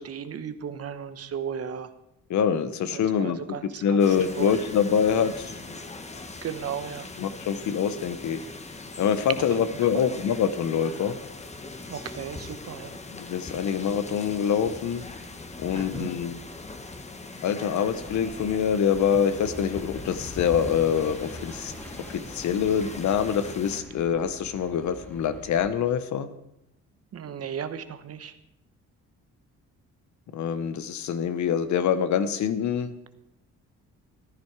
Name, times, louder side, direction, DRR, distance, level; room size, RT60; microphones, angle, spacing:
voice 1, 0.0-1.9 2.9-4.0 4.4-4.6 6.4-7.1 9.6-9.7 9.9-10.1 11.9-13.0 15.7-16.1 27.1-28.3, right 7 dB, 50° right, 11 dB, 1.1 m, -35 dB
voice 2, 2.3-3.4 3.8-5.6 7.2-8.4 9.0-11.2 13.1-15.0 15.6-16.4 17.4-21.7 22.1-26.3 30.3-32.9, left 7 dB, 70° left, 12 dB, 1.0 m, -25 dB
sound 1, 4.0-23.8, left 3 dB, 20° left, 1.3 m, -40 dB
sound 2, 17.9-25.7, right 1 dB, 5° left, 2.5 m, -45 dB
14.5 x 10.5 x 4.7 m, 0.84 s
cardioid pair, 90°, 30 cm